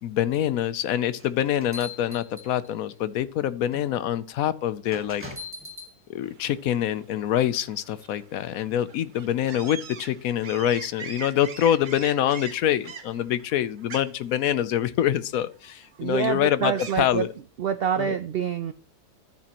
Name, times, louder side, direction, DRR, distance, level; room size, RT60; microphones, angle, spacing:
voice 1, 0.0-5.2 6.1-17.3 18.0-18.1, left 11 dB, 75° left, 15 dB, 1.0 m, -25 dB
sound 1, 1.2-2.9 3.7-3.9 4.9-5.9, left 3 dB, 10° right, 1.8 m, -40 dB
sound 2, 6.2-17.3, right 6 dB, 45° right, 0.7 m, -43 dB
voice 2, 16.0-17.2 17.6-18.7, right 8 dB, 75° right, 12 dB, 0.5 m, -26 dB
13.5 x 7.4 x 3.0 m, 0.39 s
omnidirectional pair, 1.6 m